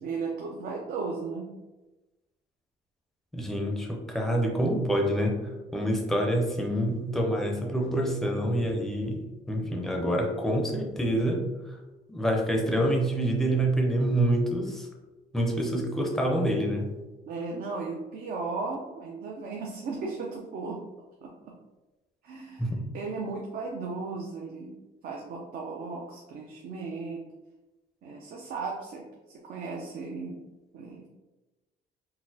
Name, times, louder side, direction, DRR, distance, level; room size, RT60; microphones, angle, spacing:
voice 1, 0.0-1.5 17.3-20.8 21.2-21.6 22.2-24.7 25.0-27.2 28.0-29.0 29.4-30.4 30.7-31.1, right 4 dB, 60° right, -1 dB, 0.5 m, -36 dB
voice 2, 3.3-5.4 5.7-11.5 12.1-14.9 15.3-16.9 22.6-22.8, right 1 dB, ahead, 1 dB, 0.5 m, -27 dB
4.0 x 2.0 x 2.6 m, 1.1 s
cardioid pair, 110°, 17 cm